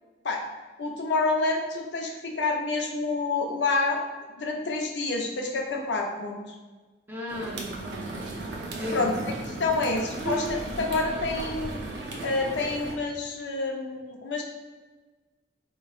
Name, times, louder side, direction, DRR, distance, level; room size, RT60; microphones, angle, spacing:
voice 1, 0.8-4.0 4.4-6.4 8.9-9.1 9.5-11.8 12.2-14.4, left 3 dB, 75° left, 1 dB, 0.5 m, -28 dB
voice 2, 7.1-8.3 8.8-9.2 10.2-10.5, equal, 10° right, -3 dB, 0.5 m, -34 dB
sound 1, 7.3-13.0, right 2 dB, 70° right, 0.5 m, -36 dB
3.6 x 3.0 x 2.4 m, 1.3 s
head